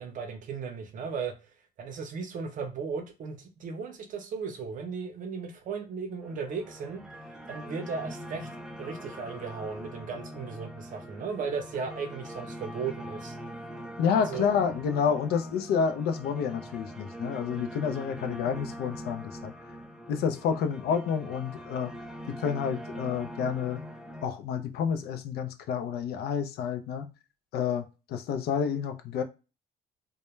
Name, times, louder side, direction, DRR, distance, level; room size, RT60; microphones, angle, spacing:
voice 1, 0.0-1.3 1.8-7.0 7.5-8.5 8.8-13.4 14.3-14.5, right 5 dB, 50° right, 6 dB, 0.6 m, -36 dB
sound 1, 6.2-24.2, equal, 5° right, 0.4 m, -42 dB
voice 2, 14.0-19.5 20.1-21.9 22.3-23.8 24.2-27.1 27.5-29.2, left 7 dB, 70° left, 7 dB, 0.4 m, -29 dB
2.1 x 2.1 x 3.0 m, 0.30 s
cardioid pair, 110°, 17 cm